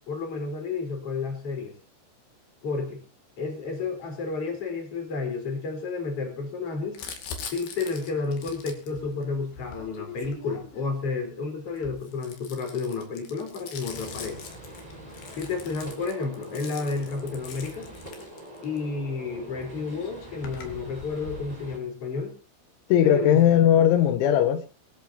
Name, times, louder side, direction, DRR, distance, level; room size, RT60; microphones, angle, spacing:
voice 1, 0.1-1.8 2.6-3.0 3.4-7.0 7.5-14.4 15.3-17.9 18.6-22.3 23.0-23.4, left 4 dB, 30° left, 4.6 m, -31 dB
Crumpling crinkling, 7.0-11.0 11.7-18.8 19.6-19.7 19.9-21.5, left 6 dB, 60° left, 4.0 m, -42 dB
Gunshot gunfire, 13.9-21.8, right 1 dB, 10° right, 3.5 m, -44 dB
voice 2, 22.9-24.7, left 10 dB, 85° left, 3.4 m, -19 dB
22.0 x 14.0 x 2.8 m
omnidirectional pair, 5.4 m